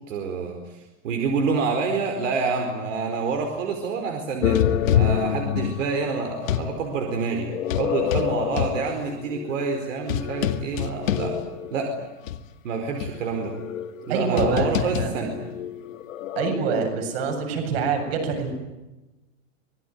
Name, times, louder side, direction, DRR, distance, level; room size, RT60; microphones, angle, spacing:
voice 1, 0.1-11.4 11.7-12.0 12.6-13.6 14.1-15.4, right 4 dB, 70° right, 4 dB, 4.6 m, -27 dB
sound 1, 4.4-6.7 7.5-11.9 12.3-12.4 13.0-16.5, left 10 dB, 80° left, 2.0 m, -26 dB
voice 2, 14.1-15.1 16.4-18.5, right 5 dB, 50° right, 4 dB, 7.9 m, -26 dB
26.0 x 21.0 x 9.5 m, 1.0 s
supercardioid pair, 175°, 39 cm